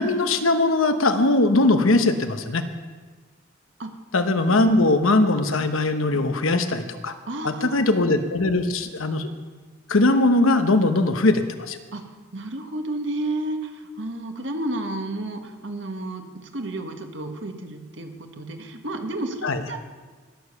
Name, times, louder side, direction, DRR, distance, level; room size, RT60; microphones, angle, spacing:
voice 1, 0.0-2.6 4.1-7.1 7.4-9.3 9.9-11.8 19.4-19.6, left 2 dB, 85° left, 8 dB, 1.1 m, -20 dB
voice 2, 4.5-4.9 7.2-7.8 11.9-12.0 12.3-19.8, right 1 dB, 65° right, 5 dB, 1.6 m, -32 dB
19.5 x 7.2 x 6.7 m, 1.4 s
head